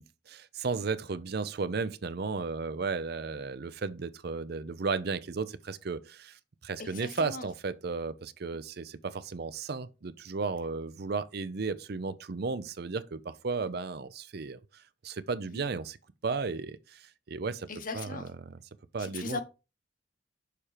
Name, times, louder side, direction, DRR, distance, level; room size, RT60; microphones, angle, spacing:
voice 1, 0.0-16.0 16.2-17.7 17.9-18.6 18.9-19.4, right 4 dB, 55° right, 0.5 m, -34 dB
voice 2, 6.8-7.5 15.4-15.6 17.7-18.3 19.0-19.4, left 3 dB, 45° left, 1.1 m, -39 dB
6.7 x 4.3 x 4.9 m
head